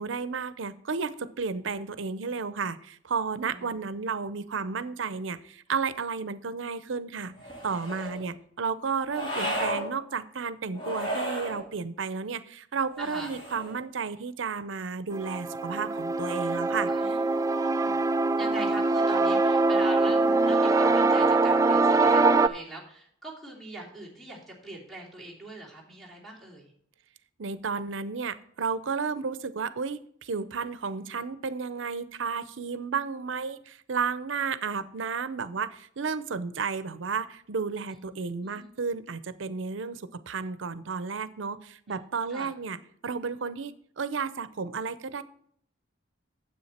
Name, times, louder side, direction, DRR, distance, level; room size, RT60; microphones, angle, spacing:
voice 1, 0.0-7.3 7.6-17.2 27.4-42.8 43.0-45.2, right 5 dB, 85° right, 15 dB, 0.6 m, -32 dB
voice 2, 3.5-3.8 8.0-8.3 13.0-13.3 16.9-18.0 18.4-26.7 37.9-38.0 38.4-38.7 42.3-42.5, right 2 dB, ahead, -6 dB, 2.9 m, -41 dB
sound 1, 7.4-8.2 9.1-9.8 10.7-11.6 12.9-13.8, right 1 dB, 25° left, 3.6 m, -33 dB
sound 2, 15.1-22.5, right 3 dB, 15° right, 0.3 m, -23 dB
9.6 x 7.9 x 4.2 m, 0.65 s
head